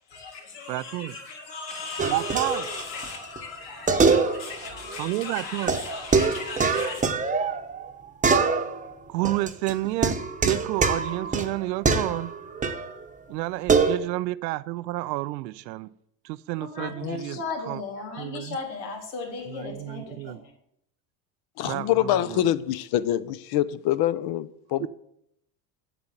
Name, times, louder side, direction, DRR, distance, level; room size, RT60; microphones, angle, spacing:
voice 1, 0.1-7.0 16.6-20.5, left 4 dB, 90° left, 3.5 m, -36 dB
voice 2, 0.7-1.2 2.1-2.7 5.0-5.8 9.1-12.3 13.3-15.9 16.2-17.4 17.7-17.8 18.2-18.6 19.5-20.4 21.6-22.5 24.8-24.9, right 18 dB, 85° right, 0.6 m, -30 dB
sound 1, 2.0-3.1 3.4-3.5 3.9-4.7 4.9-5.0 5.7-7.9 8.2-8.9 9.2-12.9 13.7-14.0, right 4 dB, 15° right, 0.9 m, -24 dB
voice 3, 16.8-17.2 21.6-24.9, left 12 dB, 50° left, 0.7 m, -25 dB
8.1 x 7.7 x 7.2 m
supercardioid pair, 105°, 49 cm